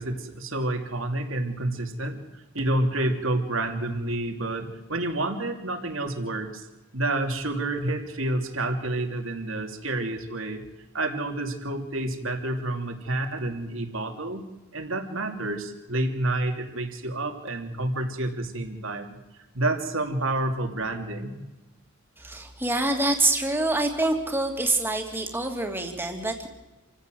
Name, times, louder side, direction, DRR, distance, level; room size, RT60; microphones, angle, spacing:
voice 1, 0.0-6.7 6.9-10.6 10.9-19.2 19.5-21.4, right 2 dB, 70° right, 4 dB, 2.9 m, -29 dB
voice 2, 22.2-26.5, right 2 dB, 10° right, 3 dB, 2.7 m, -26 dB
27.5 x 15.5 x 7.8 m, 1.1 s
head